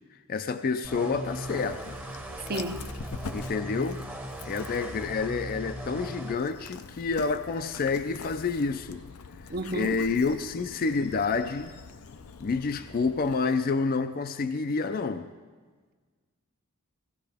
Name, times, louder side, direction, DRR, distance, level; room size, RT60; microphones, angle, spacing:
voice 1, 0.3-2.0 3.3-4.0 4.4-9.0 9.7-11.7 12.4-15.3, left 4 dB, 45° left, 0.4 m, -28 dB
sound 1, 0.8-6.4, equal, 10° right, 0.8 m, -38 dB
Dog, 1.3-13.4, left 4 dB, 85° left, 0.6 m, -45 dB
voice 2, 2.5-2.9 9.5-10.0, right 1 dB, 45° right, 0.7 m, -32 dB
17.0 x 15.5 x 3.5 m
head